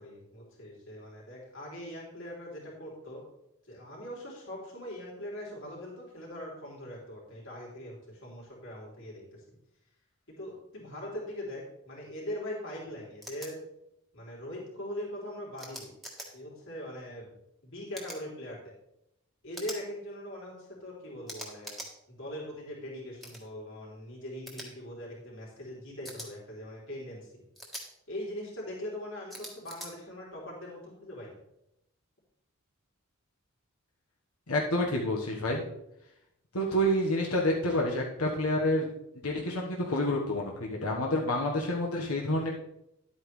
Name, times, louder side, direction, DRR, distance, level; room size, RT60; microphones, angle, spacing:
voice 1, 0.0-3.3 3.7-9.4 10.3-13.6 14.1-15.9 16.3-17.4 17.6-18.7 19.4-21.8 22.1-27.4 28.1-31.4, left 1 dB, 60° left, -4 dB, 3.7 m, -41 dB
Schreiben - Kugelschreiber klicken, 13.2-13.5 15.6-16.3 17.9-18.2 19.5-19.8 21.3-21.9 23.2-23.4 24.5-24.7 26.0-26.3 27.5-27.8 29.3-29.9, equal, ahead, 1.4 m, -42 dB
voice 2, 34.5-35.6 36.5-38.9 39.2-42.5, left 1 dB, 80° left, -1 dB, 1.4 m, -28 dB
11.0 x 8.8 x 3.3 m, 0.82 s
head